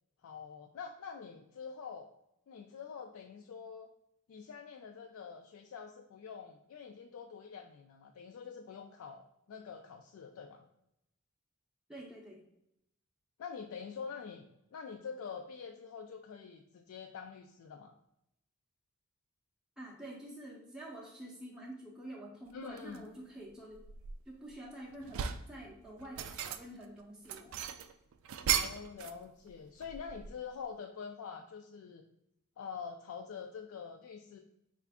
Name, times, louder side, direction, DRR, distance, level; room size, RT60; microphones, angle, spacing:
voice 1, 0.2-2.1 2.5-3.9 4.3-10.7 13.4-14.5 14.7-18.0 22.5-23.1 28.6-32.1 32.6-34.4, left 6 dB, 70° left, 4 dB, 0.3 m, -46 dB
voice 2, 11.9-12.4 19.8-23.8 24.3-27.5 28.4-28.7, right 1 dB, 5° right, -3 dB, 0.5 m, -48 dB
sound 1, 22.8-23.0 23.5-24.5 24.9-25.5 26.0-26.8 27.3-29.2 29.5-30.5, right 9 dB, 65° right, 0.3 m, -36 dB
4.3 x 2.4 x 3.4 m, 0.80 s
head